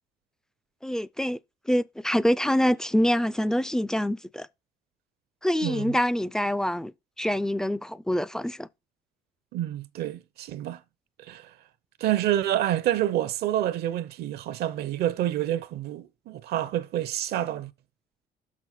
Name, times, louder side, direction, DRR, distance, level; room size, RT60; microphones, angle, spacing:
voice 1, 0.8-1.4 1.7-4.5 5.4-6.9 7.2-8.7, equal, 5° left, 0.3 m, -25 dB
voice 2, 5.6-5.9 9.5-10.8 11.3-11.5 12.0-17.7, right 12 dB, 70° right, 0.6 m, -28 dB
6.1 x 6.0 x 4.2 m
cardioid pair, 110°, 17 cm